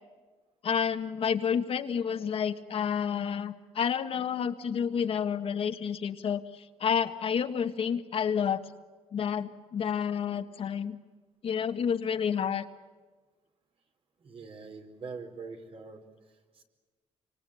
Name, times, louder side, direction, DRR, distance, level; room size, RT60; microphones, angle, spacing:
voice 1, 0.6-8.6 9.1-11.0 11.4-12.7, left 7 dB, 55° left, 8 dB, 1.6 m, -30 dB
voice 2, 14.2-16.1 16.5-16.6, right 4 dB, 55° right, 4 dB, 4.6 m, -43 dB
27.5 x 25.0 x 8.6 m, 1.3 s
cardioid pair, 125°, 11 cm